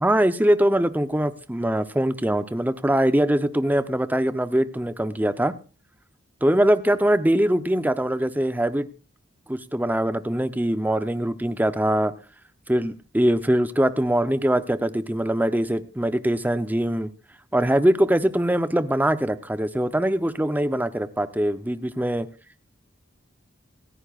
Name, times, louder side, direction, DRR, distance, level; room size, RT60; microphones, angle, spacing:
voice 1, 0.0-5.5 6.4-8.9 9.5-12.1 12.7-17.1 17.5-22.3, right 1 dB, 10° right, 12 dB, 0.6 m, -22 dB
27.0 x 9.7 x 2.4 m, 0.35 s
head